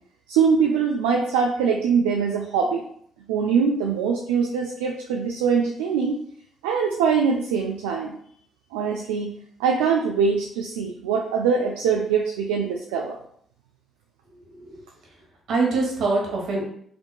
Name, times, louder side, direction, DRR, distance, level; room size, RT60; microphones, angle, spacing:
voice 1, 0.3-2.8 3.3-6.2 6.6-8.2 8.7-13.2, right 6 dB, 85° right, 1 dB, 0.4 m, -23 dB
voice 2, 14.3-14.7 15.5-16.7, right 3 dB, 65° right, -1 dB, 1.2 m, -24 dB
5.0 x 2.9 x 2.2 m, 0.65 s
hypercardioid pair, 50°, 0 cm